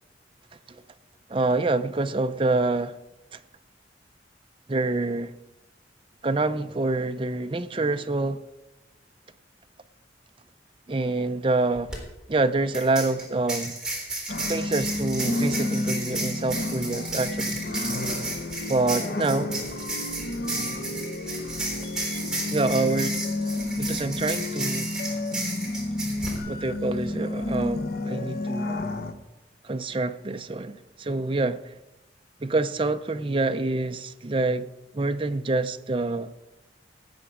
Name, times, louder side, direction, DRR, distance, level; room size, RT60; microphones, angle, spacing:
voice 1, 1.3-3.0 3.3-3.4 4.7-5.4 6.2-8.4 10.9-11.9 12.3-13.8 14.5-17.6 18.7-19.5 22.5-23.2 23.8-24.9 26.5-28.8 29.6-31.7 32.4-34.7 34.9-36.3, right 2 dB, 30° right, 0.5 m, -26 dB
sound 1, 11.9-12.0 12.7-26.4, right 2 dB, 5° right, 3.9 m, -33 dB
sound 2, 14.3-29.1, left 2 dB, 55° left, 0.9 m, -31 dB
18.5 x 8.1 x 5.0 m
head